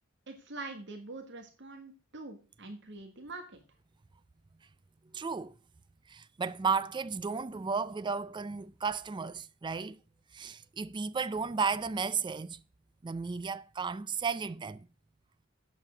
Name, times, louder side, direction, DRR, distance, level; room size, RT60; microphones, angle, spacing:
voice 1, 0.3-3.6, right 2 dB, 60° right, 1.6 m, -44 dB
voice 2, 5.1-5.5 6.1-10.0 10.3-12.6 13.0-14.9, right 5 dB, 20° right, 0.4 m, -34 dB
8.2 x 7.3 x 6.3 m
head